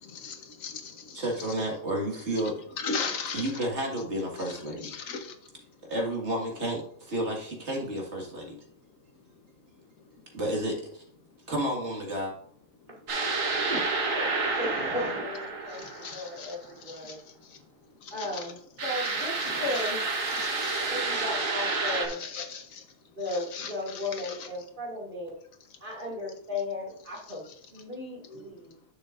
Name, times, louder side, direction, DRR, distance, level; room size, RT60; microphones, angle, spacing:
voice 1, 0.0-1.5 2.3-3.7 4.4-5.9 8.4-10.4 11.2-11.5 12.8-13.7 15.6-18.5 19.0-19.9 20.2-24.9 25.6-26.1 27.0-27.8 28.2-28.8, left 5 dB, 85° left, 6 dB, 1.4 m, -41 dB
voice 2, 1.2-2.5 3.3-4.9 5.9-8.6 10.3-11.0 11.5-12.3, right 1 dB, 55° right, -1 dB, 2.1 m, -31 dB
sound 1, 13.1-16.5 18.8-22.1, right 3 dB, 75° right, 1.7 m, -30 dB
voice 3, 13.7-15.8 16.1-17.2 18.1-20.0 20.9-22.2 23.2-25.3 25.8-27.4 27.7-28.7, left 1 dB, 40° right, -4 dB, 2.4 m, -35 dB
10.5 x 6.2 x 2.5 m, 0.62 s
omnidirectional pair, 1.4 m